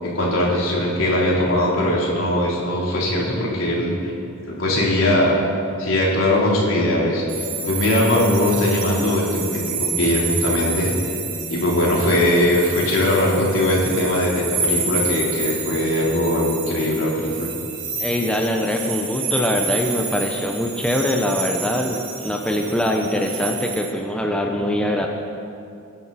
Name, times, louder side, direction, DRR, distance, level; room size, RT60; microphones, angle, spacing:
voice 1, 0.0-4.0 4.5-5.4 5.8-7.2 7.6-10.9 11.5-17.5, left 1 dB, 70° left, -4 dB, 3.7 m, -20 dB
sound 1, 7.3-23.9, right 4 dB, 55° right, 3.0 m, -29 dB
voice 2, 18.0-25.1, equal, 5° left, 1 dB, 0.8 m, -23 dB
22.5 x 10.5 x 4.2 m, 2.5 s
head